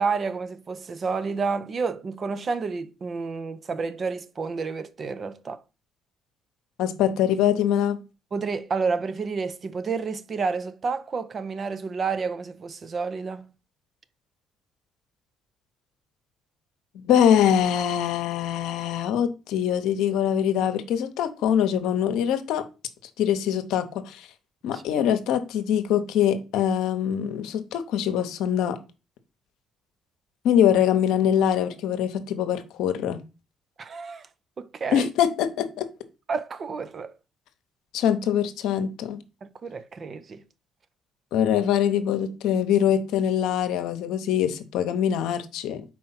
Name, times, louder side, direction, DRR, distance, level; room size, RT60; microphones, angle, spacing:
voice 1, 0.0-5.6 8.3-13.5 24.7-25.0 33.8-34.3 34.6-35.1 36.3-37.1 39.4-40.4, right 4 dB, 45° right, 0.6 m, -30 dB
voice 2, 6.8-8.0 16.9-22.6 23.2-24.3 24.6-28.8 30.4-33.2 34.9-35.9 37.9-39.2 41.3-45.8, left 9 dB, 80° left, 0.8 m, -23 dB
4.5 x 4.3 x 5.6 m
supercardioid pair, 70°, 0 cm